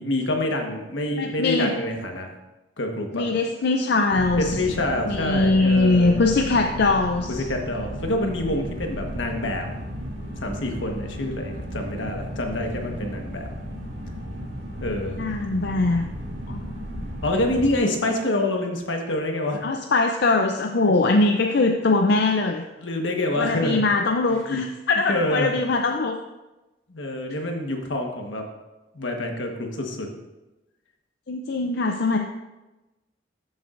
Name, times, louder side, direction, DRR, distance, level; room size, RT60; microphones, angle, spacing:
voice 1, 0.0-2.3 2.8-3.4 4.4-6.2 7.3-9.7 10.4-13.5 14.8-15.2 17.2-19.6 22.8-23.8 25.1-25.5 26.9-28.4 28.9-30.1, left 1 dB, 80° left, 3 dB, 1.3 m, -26 dB
voice 2, 1.2-1.7 3.1-4.6 5.1-7.4 15.2-16.1 16.5-16.6 19.6-22.6 23.4-26.2 31.3-32.2, left 3 dB, 60° left, 4 dB, 0.5 m, -21 dB
sound 1, 4.1-17.8, equal, 80° right, 2.1 m, -34 dB
13.5 x 7.1 x 2.5 m, 1.1 s
head